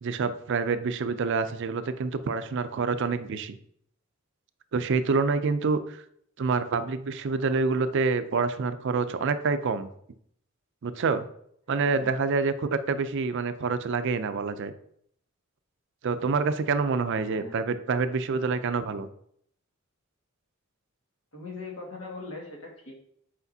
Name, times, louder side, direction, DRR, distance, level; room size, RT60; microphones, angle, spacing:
voice 1, 0.0-3.6 4.7-6.0 6.4-9.9 10.8-11.3 11.7-14.7 16.0-19.1, right 4 dB, 60° right, 11 dB, 0.4 m, -27 dB
voice 2, 17.1-17.6 21.3-23.0, left 3 dB, 70° left, -1 dB, 1.8 m, -41 dB
8.1 x 5.0 x 2.7 m, 0.68 s
head